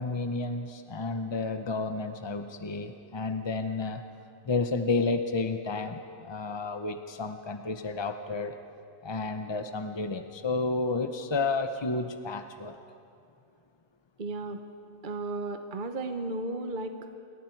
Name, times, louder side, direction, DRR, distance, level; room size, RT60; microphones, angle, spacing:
voice 1, 0.0-4.0 4.4-8.5 9.0-12.8, left 3 dB, 30° left, 7 dB, 0.5 m, -31 dB
voice 2, 14.2-14.6 15.0-17.2, right 2 dB, 40° right, 7 dB, 1.0 m, -34 dB
29.5 x 22.5 x 4.6 m, 2.5 s
omnidirectional pair, 1.5 m